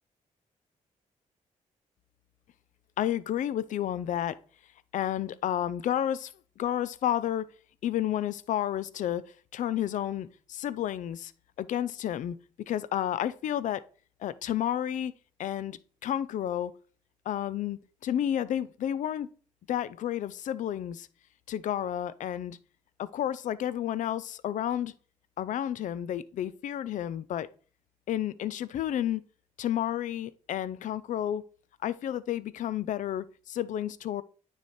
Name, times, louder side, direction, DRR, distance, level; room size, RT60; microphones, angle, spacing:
voice 1, 3.0-4.4 4.9-7.5 7.8-11.3 11.6-12.4 12.7-13.8 14.2-15.1 15.4-16.7 17.3-19.3 19.7-21.1 21.5-22.6 23.0-24.9 25.4-27.5 28.1-29.2 29.6-31.4 31.8-34.2, left 11 dB, 70° left, 0.4 m, -31 dB
9.3 x 3.3 x 4.2 m
cardioid pair, 100°, 14 cm